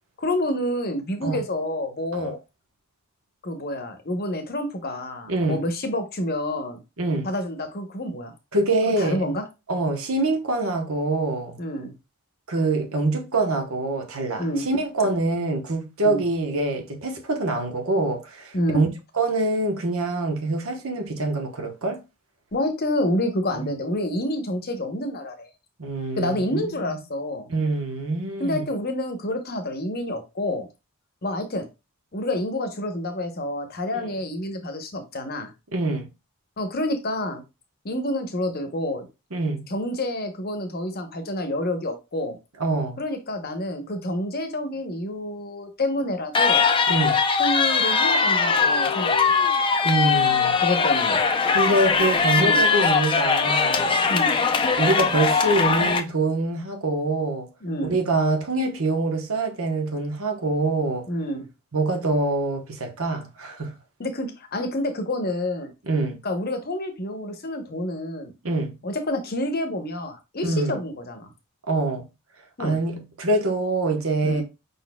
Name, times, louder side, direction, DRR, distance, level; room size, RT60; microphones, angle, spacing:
voice 1, 0.2-2.4 3.4-6.8 7.2-8.3 9.0-9.4 11.6-11.9 14.4-14.7 16.0-16.2 18.5-18.8 22.5-25.5 26.2-27.5 28.4-30.7 31.2-31.7 32.1-35.5 36.6-37.4 37.8-39.1 39.7-42.4 43.0-46.6 47.4-49.1 50.6-51.2 52.4-52.6 54.1-54.4 57.6-58.0 61.1-61.5 64.0-65.7 66.2-68.3 68.8-71.3 72.6-72.8 74.2-74.4, left 1 dB, 45° left, 0.8 m, -28 dB
voice 2, 5.3-5.6 7.0-7.3 8.5-9.4 9.7-11.6 12.5-18.9 19.2-22.0 23.6-23.7 25.8-27.0 27.5-28.6 35.7-36.1 39.3-39.6 42.6-43.0 46.9-47.2 49.8-50.6 51.5-54.0 54.8-57.5 57.8-61.1 61.7-63.7 65.8-66.2 68.4-68.8 70.4-70.8 71.7-72.0 72.6-74.4, right 2 dB, 70° right, 1.0 m, -25 dB
sound 1, 46.3-56.0, left 5 dB, 25° left, 0.4 m, -21 dB
5.3 x 4.1 x 2.2 m
head